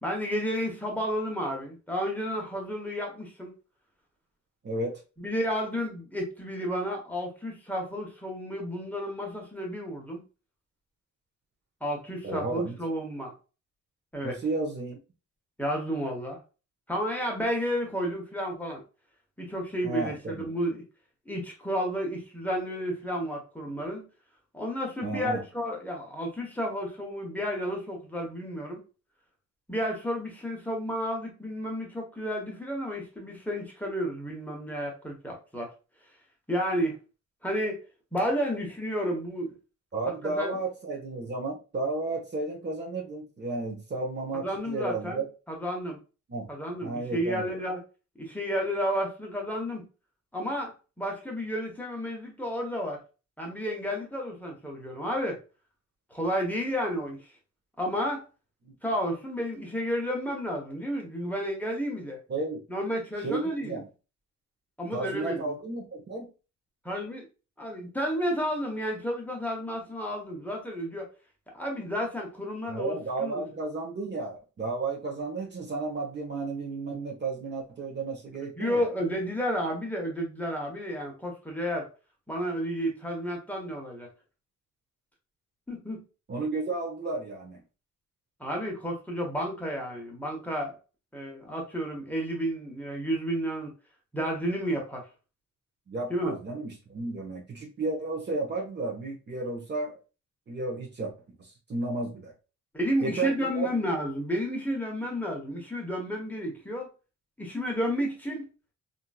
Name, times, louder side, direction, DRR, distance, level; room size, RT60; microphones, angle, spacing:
voice 1, 0.0-3.5 5.2-10.2 11.8-13.3 14.1-14.4 15.6-16.4 16.9-18.8 19.4-20.8 21.3-24.0 24.5-28.8 29.7-35.7 36.5-37.0 37.4-37.8 38.1-39.6 40.2-40.6 44.4-46.0 46.5-47.8 48.2-49.9 50.3-53.0 53.4-55.4 56.1-57.2 57.8-58.2 58.8-62.2 62.7-63.8 64.8-65.5 66.8-67.3 67.6-71.1 71.5-73.4 78.6-81.9 82.3-84.1 85.7-86.0 88.4-90.7 91.1-93.7 94.1-95.1 96.1-96.4 102.7-106.9 107.4-108.5, equal, 5° left, 1.0 m, -31 dB
voice 2, 4.6-5.0 12.2-12.7 14.2-15.0 19.8-20.5 25.0-25.4 39.9-45.2 46.3-46.5 46.8-47.5 58.6-58.7 62.3-62.6 63.2-63.8 64.9-66.3 72.7-78.9 86.3-87.6 95.9-99.9 100.5-101.1 101.4-102.3 103.0-103.7, right 3 dB, 35° right, 0.8 m, -33 dB
2.9 x 2.6 x 2.3 m
cardioid pair, 90°, 30 cm